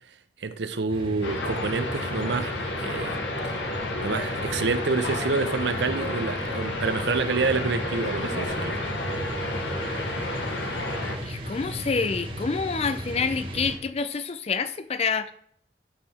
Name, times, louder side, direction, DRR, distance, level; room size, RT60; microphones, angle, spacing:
voice 1, 0.4-3.6 4.0-8.8, right 4 dB, 70° right, 12 dB, 0.6 m, -28 dB
sound 1, 0.9-13.8, equal, 30° right, 1.3 m, -37 dB
sound 2, 1.2-11.2, left 1 dB, 80° left, 1.2 m, -31 dB
voice 2, 11.2-15.3, left 5 dB, 35° left, 12 dB, 0.4 m, -27 dB
10.5 x 4.8 x 4.2 m, 0.63 s
head